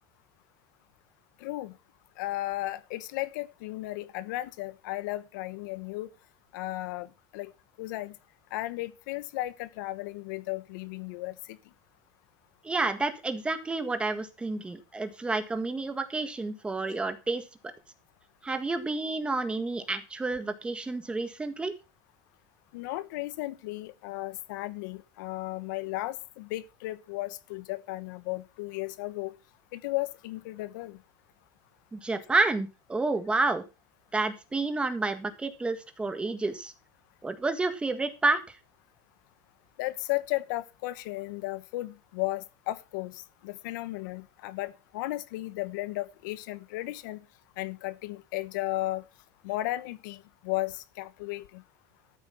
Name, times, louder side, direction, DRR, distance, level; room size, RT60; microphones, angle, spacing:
voice 1, 1.4-1.7 2.2-6.1 6.5-7.5 7.8-8.1 8.5-11.6 22.7-29.3 29.7-31.0 39.8-47.2 47.6-49.0 49.4-51.6, left 18 dB, 80° left, 1.1 m, -35 dB
voice 2, 12.6-17.4 18.4-21.7 31.9-33.6 34.1-36.7 37.2-38.6, right 3 dB, 10° right, 1.6 m, -30 dB
13.5 x 8.1 x 5.7 m
cardioid pair, 155°, 10 cm